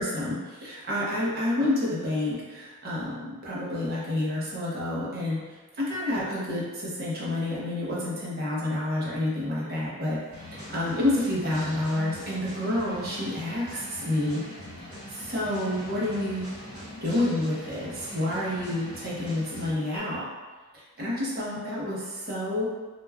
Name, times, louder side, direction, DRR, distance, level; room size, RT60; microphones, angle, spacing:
voice 1, 0.0-5.4 5.8-10.2 10.5-14.4 15.1-16.5 17.0-20.3 20.7-22.6, left 1 dB, 45° right, -7 dB, 0.7 m, -29 dB
sound 1, 10.3-20.0, left 1 dB, 85° right, 1.5 m, -42 dB
3.3 x 2.3 x 2.2 m, 1.3 s
head